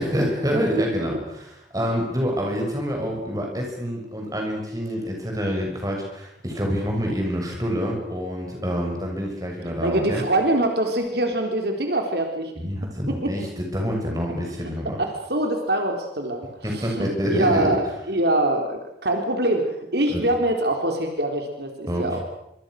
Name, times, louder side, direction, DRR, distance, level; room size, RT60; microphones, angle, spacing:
voice 1, 0.0-10.2 12.6-15.0 16.6-17.7 20.1-20.2 21.9-22.2, equal, 20° right, 1 dB, 6.7 m, -27 dB
voice 2, 9.8-12.5 13.1-13.3 14.8-17.8 18.1-22.2, right 1 dB, 70° right, 4 dB, 3.9 m, -24 dB
25.5 x 25.0 x 6.6 m, 0.79 s
head